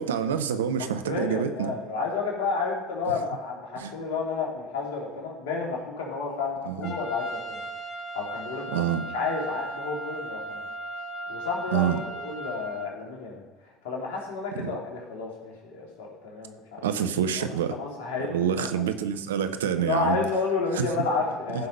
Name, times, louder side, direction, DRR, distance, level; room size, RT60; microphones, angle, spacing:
voice 1, 0.0-1.7 3.8-3.9 6.7-6.9 8.7-9.1 11.7-12.0 14.6-14.7 16.8-17.8 18.3-20.2 20.8-20.9 21.5-21.6, right 8 dB, 80° right, 10 dB, 0.8 m, -27 dB
voice 2, 0.8-7.6 8.1-8.8 9.1-10.6 11.3-13.5 13.8-16.8 17.3-18.9 19.8-21.7, left 4 dB, 75° left, -1 dB, 3.0 m, -31 dB
Trumpet, 6.8-12.9, right 2 dB, 50° left, 1.5 m, -37 dB
14.5 x 5.8 x 5.3 m, 1.2 s
hypercardioid pair, 65°, 0 cm